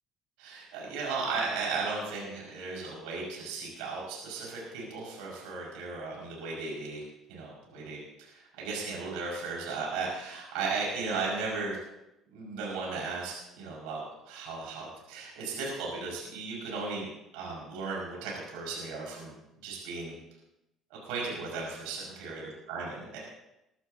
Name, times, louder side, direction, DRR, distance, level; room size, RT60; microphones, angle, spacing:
voice 1, 0.4-7.0 7.3-11.8 12.3-17.1 17.3-19.3 19.6-20.1 20.9-23.2, right 4 dB, 75° right, -3 dB, 5.3 m, -36 dB
22.5 x 11.5 x 2.8 m, 0.88 s
hypercardioid pair, 65°, 0 cm